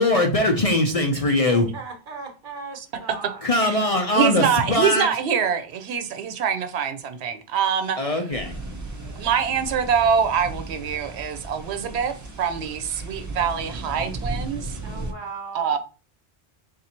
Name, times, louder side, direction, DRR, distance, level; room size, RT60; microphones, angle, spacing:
voice 1, 0.0-1.7 3.4-5.1 8.0-8.5, left 2 dB, 45° left, 0.5 m, -21 dB
voice 2, 1.5-3.5 14.8-15.8, right 4 dB, 55° right, 1.1 m, -38 dB
voice 3, 4.2-8.0 9.2-14.8 15.5-15.8, right 7 dB, 85° right, 0.9 m, -24 dB
sound 1, 8.3-15.1, right 2 dB, 20° right, 0.5 m, -35 dB
3.7 x 2.7 x 4.2 m
omnidirectional pair, 1.1 m